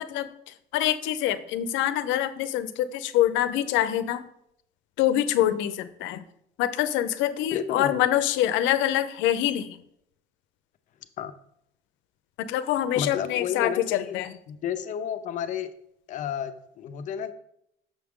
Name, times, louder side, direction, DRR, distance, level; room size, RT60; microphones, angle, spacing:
voice 1, 0.0-4.2 5.0-6.2 6.6-9.8 12.4-14.4, left 12 dB, 90° left, 12 dB, 0.6 m, -25 dB
voice 2, 7.5-8.0 11.2-11.3 13.0-14.1 14.5-15.7 16.1-17.3, left 8 dB, 40° left, 10 dB, 0.5 m, -31 dB
6.7 x 6.0 x 3.6 m, 0.74 s
cardioid pair, 175°, 19 cm